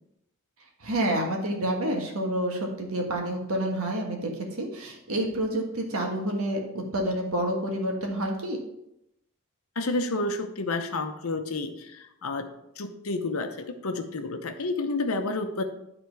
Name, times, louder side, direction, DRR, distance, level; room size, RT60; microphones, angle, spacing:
voice 1, 0.8-6.6 6.9-8.6, right 1 dB, 75° right, 2 dB, 1.5 m, -28 dB
voice 2, 9.8-12.5 12.8-15.6, left 2 dB, 75° left, 6 dB, 0.8 m, -30 dB
10.5 x 3.9 x 4.6 m, 0.83 s
head